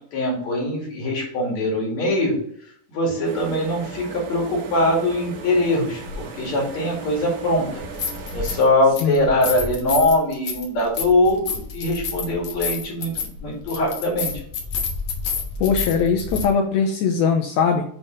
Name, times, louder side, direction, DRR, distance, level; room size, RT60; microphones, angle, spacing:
voice 1, 0.1-2.4 2.9-7.8 8.3-14.3, left 1 dB, 50° left, -2 dB, 2.9 m, -22 dB
sound 1, 3.2-8.7, right 4 dB, 70° right, 3.2 m, -37 dB
sound 2, 6.0-6.2 7.7-8.7 8.9-16.5, left 5 dB, 70° left, 1.6 m, -29 dB
voice 2, 15.6-17.8, left 6 dB, 85° left, 3 dB, 2.2 m, -20 dB
7.9 x 3.9 x 3.8 m, 0.63 s
omnidirectional pair, 4.9 m